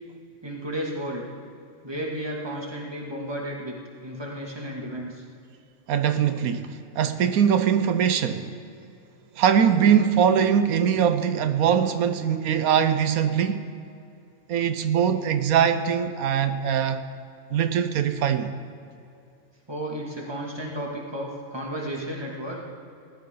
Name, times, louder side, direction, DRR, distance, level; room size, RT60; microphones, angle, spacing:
voice 1, 0.4-1.3 1.8-3.7 4.0-5.2 19.7-22.6, equal, 20° right, -3 dB, 2.4 m, -33 dB
voice 2, 5.9-8.5 9.4-13.7 14.5-17.0 17.5-18.5, right 8 dB, 90° right, 9 dB, 1.2 m, -22 dB
18.5 x 13.0 x 3.9 m, 2.6 s
omnidirectional pair, 1.5 m